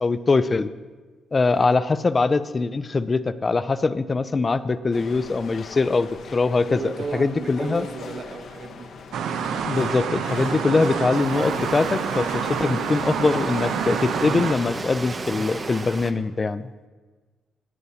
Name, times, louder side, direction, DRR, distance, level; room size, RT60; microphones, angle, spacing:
voice 1, 0.0-0.7 1.3-7.9 9.6-16.7, left 3 dB, 30° left, 14 dB, 0.4 m, -22 dB
sound 1, 4.9-14.5, left 5 dB, 70° left, 1.0 m, -40 dB
voice 2, 6.7-8.9, right 4 dB, 55° right, 5 dB, 1.2 m, -34 dB
sound 2, 9.1-14.5, right 7 dB, 75° right, 0.6 m, -27 dB
Waves surf, 11.1-16.1, right 3 dB, 35° right, 0.7 m, -35 dB
18.5 x 8.1 x 2.8 m, 1.3 s
cardioid pair, 90°, 0 cm